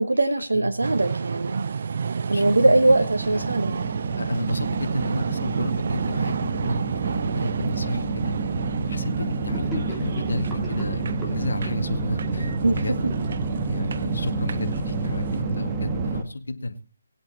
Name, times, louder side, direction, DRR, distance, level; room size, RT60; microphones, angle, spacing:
voice 1, 0.0-1.7 2.3-3.7 12.6-12.8, right 2 dB, 80° right, 8 dB, 1.0 m, -21 dB
sound 1, 0.8-15.4, right 6 dB, 50° right, 0.5 m, -31 dB
sound 2, 2.2-16.2, right 3 dB, 25° right, 1.5 m, -29 dB
voice 2, 2.3-2.8 3.3-3.5 4.2-8.3 8.9-13.0 13.6-16.8, left 2 dB, 70° left, 7 dB, 2.0 m, -33 dB
Gurgling / Sink (filling or washing), 9.5-14.0, right 1 dB, 10° right, 3.5 m, -39 dB
19.5 x 8.2 x 4.3 m, 0.37 s
figure-of-eight pair, 150°, 0 cm